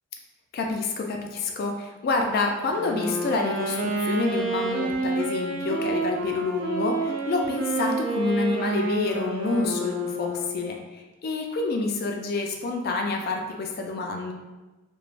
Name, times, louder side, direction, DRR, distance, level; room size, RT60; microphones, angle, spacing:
voice 1, 0.5-14.3, left 3 dB, 50° left, 2 dB, 0.3 m, -28 dB
Wind instrument woodwind instrument, 2.7-10.8, right 2 dB, 65° right, 0.4 m, -29 dB
3.1 x 2.1 x 2.4 m, 1.1 s
head